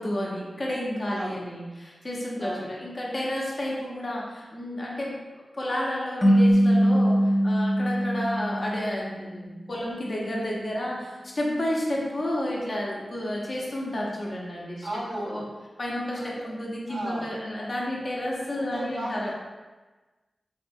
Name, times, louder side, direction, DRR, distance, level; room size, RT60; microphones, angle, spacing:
voice 1, 0.0-5.2 5.6-14.9 15.2-15.4 15.8-19.3, left 1 dB, 45° left, -4 dB, 0.7 m, -31 dB
voice 2, 1.1-1.4 2.4-2.7 14.8-15.5 16.1-16.5 16.9-17.3 18.5-19.3, right 1 dB, 85° right, -5 dB, 0.7 m, -35 dB
sound 1, 6.2-9.4, equal, 10° left, 0.5 m, -22 dB
3.5 x 2.3 x 2.6 m, 1.2 s
wide cardioid pair, 65°, 0 cm